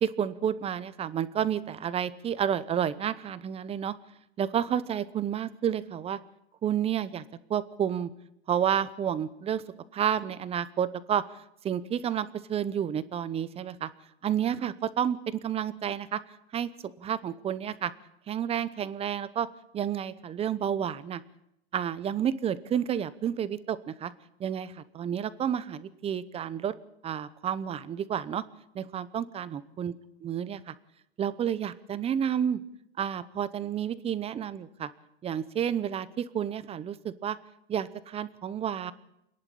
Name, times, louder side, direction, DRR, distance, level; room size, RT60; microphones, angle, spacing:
voice 1, 0.0-3.9 4.4-6.2 6.6-7.2 7.5-8.1 8.5-9.6 9.9-11.2 11.6-13.9 14.2-16.2 16.5-16.7 17.0-17.9 18.3-19.5 19.7-21.2 21.7-24.1 24.4-26.7 27.0-28.4 28.7-30.0 30.2-30.7 31.2-32.6 33.0-34.9 35.2-37.4 37.7-38.9, right 9 dB, 20° right, 16 dB, 0.8 m, -30 dB
28.0 x 11.0 x 8.5 m, 0.81 s
supercardioid pair, 140°, 33 cm